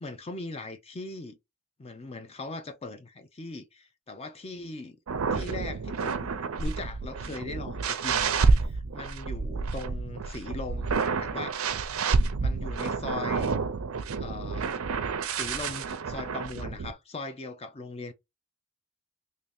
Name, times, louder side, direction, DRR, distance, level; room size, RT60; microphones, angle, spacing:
voice 1, 0.0-1.4 1.8-5.0 5.3-11.6 12.4-13.6 14.2-14.7 15.2-18.1, left 3 dB, 30° left, 0.5 m, -40 dB
sound 1, 5.1-16.9, right 4 dB, 75° right, 0.5 m, -29 dB
3.0 x 2.7 x 3.5 m
head